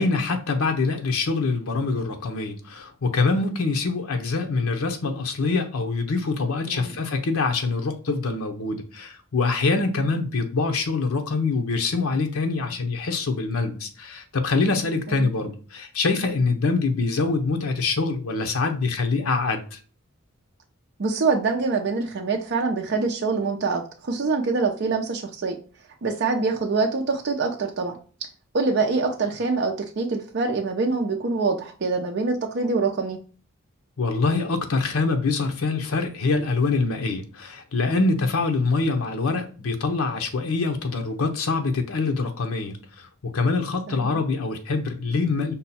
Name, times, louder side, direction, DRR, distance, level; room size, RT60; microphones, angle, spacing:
voice 1, 0.0-19.8 34.0-45.5, left 3 dB, 85° left, 0.7 m, -24 dB
voice 2, 21.0-25.6 26.0-28.0 28.5-33.2 44.0-44.2, right 4 dB, 55° right, 0.5 m, -25 dB
5.3 x 2.2 x 4.1 m
head